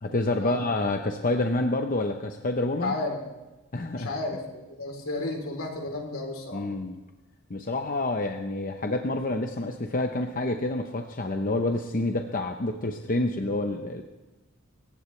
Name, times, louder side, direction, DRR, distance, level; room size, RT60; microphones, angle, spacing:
voice 1, 0.0-2.9 3.7-4.1 6.5-7.0 7.5-14.0, left 2 dB, 40° left, 4 dB, 0.8 m, -28 dB
voice 2, 2.8-3.2 3.9-6.6, left 2 dB, 75° left, 2 dB, 3.5 m, -33 dB
26.0 x 15.5 x 3.3 m, 1.1 s
head